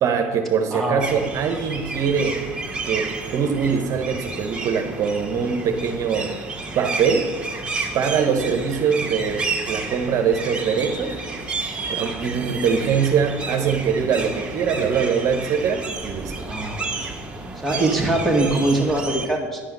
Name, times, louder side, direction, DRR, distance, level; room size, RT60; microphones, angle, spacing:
voice 1, 0.0-2.4 2.8-6.4 6.7-7.3 7.9-11.1 11.9-16.3, right 6 dB, 50° right, 5 dB, 1.0 m, -22 dB
voice 2, 0.7-1.0 11.8-12.2 16.4-16.9 17.6-19.6, right 2 dB, 5° left, 1 dB, 2.1 m, -23 dB
sound 1, 1.0-19.3, right 3 dB, 15° right, 1.8 m, -31 dB
10.0 x 5.6 x 6.6 m, 1.4 s
supercardioid pair, 95°, 7 cm